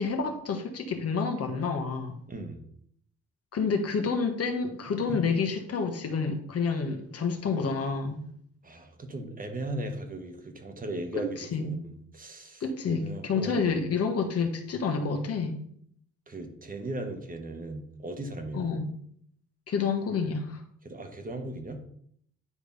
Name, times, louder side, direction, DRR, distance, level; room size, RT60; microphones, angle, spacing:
voice 1, 0.0-2.1 3.5-8.2 11.2-11.8 12.6-15.6 18.5-18.9 19.7-20.6, left 5 dB, 50° left, 5 dB, 1.3 m, -29 dB
voice 2, 2.3-2.6 5.1-5.2 8.6-13.7 16.3-18.7 20.8-21.8, right 1 dB, 30° right, 5 dB, 1.3 m, -37 dB
9.7 x 3.3 x 5.5 m, 0.66 s
cardioid pair, 90°, 30 cm